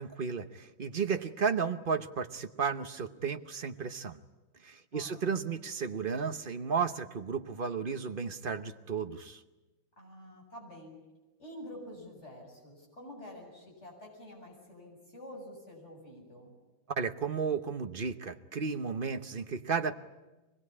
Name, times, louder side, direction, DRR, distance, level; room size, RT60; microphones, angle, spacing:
voice 1, 0.0-4.2 4.6-9.4 16.9-20.0, right 5 dB, 40° right, 8 dB, 0.7 m, -33 dB
voice 2, 4.9-5.3 10.0-10.9 11.4-16.5, left 1 dB, 35° left, -1 dB, 7.8 m, -48 dB
24.0 x 21.0 x 9.8 m, 1.1 s
omnidirectional pair, 2.1 m